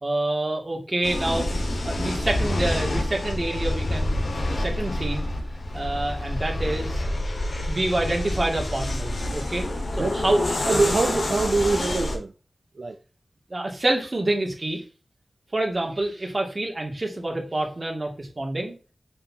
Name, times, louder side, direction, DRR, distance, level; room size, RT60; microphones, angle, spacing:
voice 1, 0.0-5.3 5.7-7.0 7.6-9.6 9.9-10.6 13.5-14.8 15.5-18.8, right 2 dB, 40° right, 2.3 m, -27 dB
sound 1, 1.0-12.2, left 1 dB, 80° left, 1.7 m, -27 dB
voice 2, 10.0-12.3 12.8-13.0, right 3 dB, 70° right, 0.6 m, -24 dB
6.7 x 5.3 x 2.8 m
wide cardioid pair, 70°, 0 cm